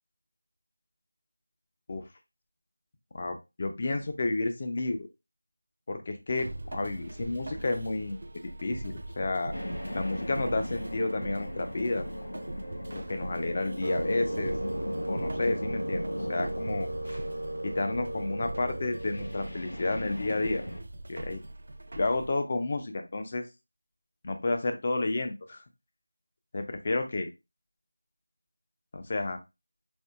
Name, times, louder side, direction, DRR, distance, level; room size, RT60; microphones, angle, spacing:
voice 1, 3.1-5.0 5.9-8.2 8.6-9.5 9.9-12.1 12.9-14.5 15.1-16.0 16.3-17.2 17.6-20.6 21.1-21.4 22.0-23.4 24.2-25.6 26.5-27.3 28.9-29.4, left 2 dB, 30° left, 5 dB, 0.5 m, -31 dB
sound 1, 6.4-22.3, right 2 dB, 45° right, 0.3 m, -41 dB
sound 2, 9.5-20.8, left 1 dB, 50° left, 1.4 m, -39 dB
sound 3, 13.8-19.9, right 1 dB, 70° right, 0.7 m, -36 dB
4.3 x 2.4 x 2.3 m, 0.24 s
figure-of-eight pair, 170°, 0 cm